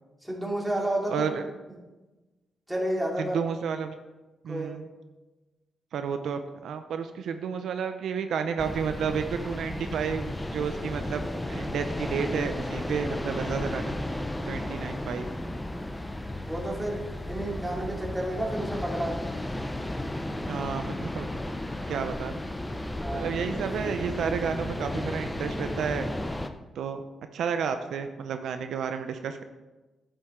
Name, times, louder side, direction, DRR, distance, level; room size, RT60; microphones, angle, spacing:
voice 1, 0.2-1.3 2.7-3.4 4.5-4.7 14.6-14.9 16.5-17.0 17.3-19.2 23.0-23.3, right 1 dB, 5° right, -3 dB, 2.7 m, -31 dB
voice 2, 1.1-1.4 3.2-4.0 4.4-4.9 5.9-13.9 14.5-15.3 20.5-21.3 21.9-22.4 23.1-26.1 26.8-27.0 27.3-29.4, right 6 dB, 80° right, 8 dB, 0.6 m, -31 dB
sound 1, 8.6-26.5, left 1 dB, 10° left, 0.7 m, -34 dB
11.5 x 7.5 x 3.7 m, 1.2 s
cardioid pair, 95°, 0 cm